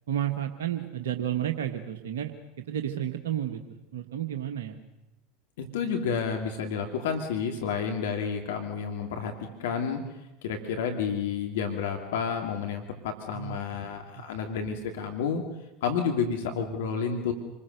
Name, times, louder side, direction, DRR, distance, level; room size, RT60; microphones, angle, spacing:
voice 1, 0.1-4.8 13.3-13.6 14.1-14.3, right 11 dB, 70° right, 4 dB, 1.5 m, -32 dB
voice 2, 5.6-15.4 15.8-17.3, left 6 dB, 70° left, 4 dB, 2.6 m, -30 dB
27.5 x 21.0 x 6.7 m, 0.96 s
figure-of-eight pair, 80°, 0 cm